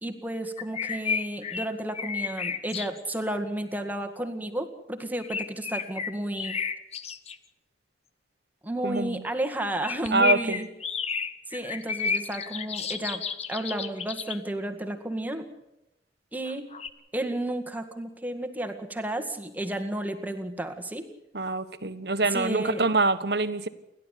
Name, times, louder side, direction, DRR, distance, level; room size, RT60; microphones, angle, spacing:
voice 1, 0.0-6.6 8.6-10.7 11.5-13.2 13.5-15.5 16.3-16.6 17.1-21.1 22.3-22.8, right 1 dB, 10° right, 6 dB, 1.9 m, -32 dB
sound 1, 0.6-3.2 5.2-7.4 9.7-14.4 16.4-16.9, left 6 dB, 35° left, 1.1 m, -32 dB
voice 2, 8.8-9.2 10.1-10.6 21.3-23.7, right 3 dB, 65° right, 10 dB, 1.4 m, -25 dB
29.5 x 12.0 x 8.4 m, 0.90 s
head